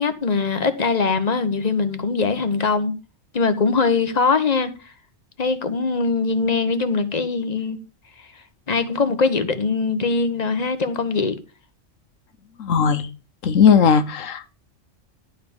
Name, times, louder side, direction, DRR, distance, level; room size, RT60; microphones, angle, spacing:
voice 1, 0.0-2.9 3.3-4.7 5.4-7.8 8.7-11.4, left 4 dB, 35° left, 1.1 m, -21 dB
voice 2, 12.6-13.1 13.4-14.5, left 6 dB, 75° left, 1.4 m, -17 dB
11.5 x 4.3 x 7.0 m
omnidirectional pair, 1.3 m